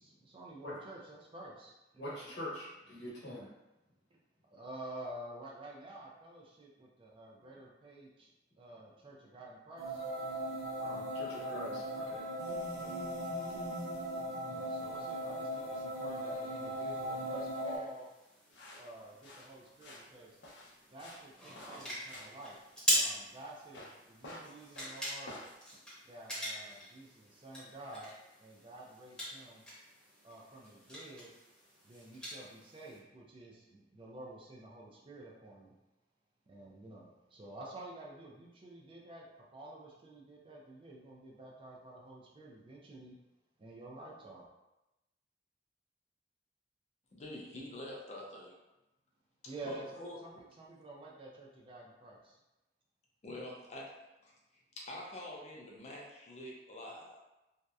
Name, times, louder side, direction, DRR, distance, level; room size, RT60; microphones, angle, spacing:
voice 1, 0.0-2.2 4.5-8.3 8.6-10.1 12.7-13.0 14.5-18.1 18.7-20.3 20.9-22.6 22.9-25.3 26.0-28.1 28.4-29.6 30.2-31.3 31.8-35.8 36.5-43.2 43.6-44.5 49.5-52.4, right 2 dB, 30° right, -3 dB, 0.4 m, -50 dB
voice 2, 2.0-3.4 10.8-12.2, left 1 dB, 65° left, -7 dB, 1.0 m, -44 dB
sound 1, 9.8-17.8, equal, 85° right, 0.7 m, -38 dB
sound 2, 14.6-33.0, equal, 5° left, 0.8 m, -42 dB
sound 3, 18.5-25.5, left 1 dB, 85° left, 0.6 m, -52 dB
voice 3, 47.1-48.5 49.6-50.2 53.2-53.9 54.2-54.3 54.8-57.2, left 1 dB, 40° left, -3 dB, 0.5 m, -46 dB
2.7 x 2.1 x 2.3 m, 0.97 s
head